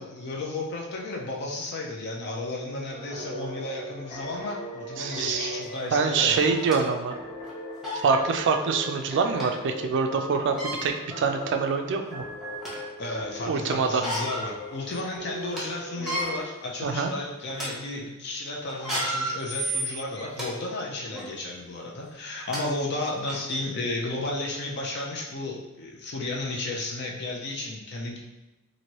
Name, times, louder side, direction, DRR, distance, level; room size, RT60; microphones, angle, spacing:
voice 1, 0.0-6.5 13.0-28.2, left 2 dB, 50° left, -2 dB, 0.5 m, -33 dB
sound 1, 2.9-16.4, equal, 35° left, 1.0 m, -39 dB
voice 2, 5.0-5.5 5.9-7.2 8.0-12.2 13.5-14.0 16.8-17.1, right 5 dB, 55° right, 5 dB, 0.3 m, -25 dB
sound 2, 5.6-5.7 6.4-6.8 7.4-7.5 7.8-8.1 9.4-9.5 10.4-10.8 11.6-11.7 12.2-12.9 13.8-14.5 14.9-15.0 15.3-15.6 15.9-16.3 16.9-17.1 17.5-17.7 18.7-20.5 21.1-21.3 22.1-22.2 22.5-22.6 23.3-23.4, right 1 dB, ahead, 0.8 m, -32 dB
3.0 x 2.6 x 2.9 m, 1.1 s
head